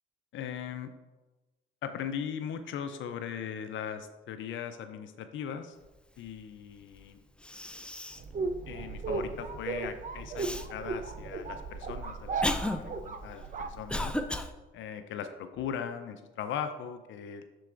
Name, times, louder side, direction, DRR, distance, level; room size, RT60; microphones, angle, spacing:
voice 1, 0.3-0.9 1.8-5.8 6.2-7.1 8.7-14.1 14.7-17.4, left 8 dB, 75° left, 8 dB, 0.5 m, -39 dB
Cough, 7.0-7.1 7.4-8.3 8.8-8.9 10.4-10.7 11.4-14.5, left 1 dB, 5° left, 0.4 m, -34 dB
sound 1, 8.2-14.4, right 3 dB, 40° right, 0.6 m, -36 dB
7.6 x 6.8 x 2.5 m, 1.2 s
cardioid pair, 90°, 20 cm